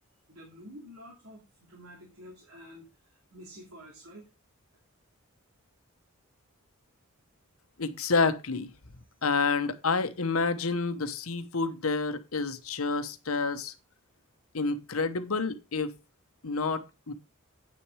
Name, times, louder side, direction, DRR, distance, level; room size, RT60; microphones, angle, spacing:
voice 1, 0.3-2.9 3.3-4.3, equal, 85° right, 0 dB, 2.6 m, -49 dB
voice 2, 7.8-8.7 9.2-13.7 14.5-15.9 16.4-17.1, left 4 dB, 85° left, 10 dB, 1.0 m, -29 dB
8.7 x 6.3 x 4.7 m, 0.27 s
head